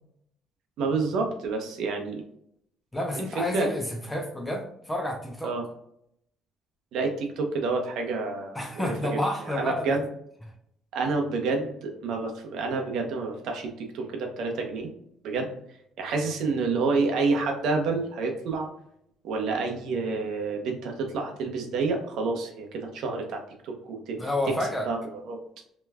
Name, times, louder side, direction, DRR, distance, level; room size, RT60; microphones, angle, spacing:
voice 1, 0.8-2.2 3.5-3.7 5.4-5.6 6.9-9.2 9.5-10.1 10.9-14.9 15.2-15.5 16.0-18.7 19.2-24.2 24.9-25.4, right 3 dB, 70° right, 2 dB, 0.7 m, -29 dB
voice 2, 2.9-5.5 8.5-10.0 24.2-24.9, left 1 dB, 10° left, 1 dB, 0.7 m, -30 dB
3.4 x 3.0 x 2.2 m, 0.71 s
cardioid pair, 130°, 0 cm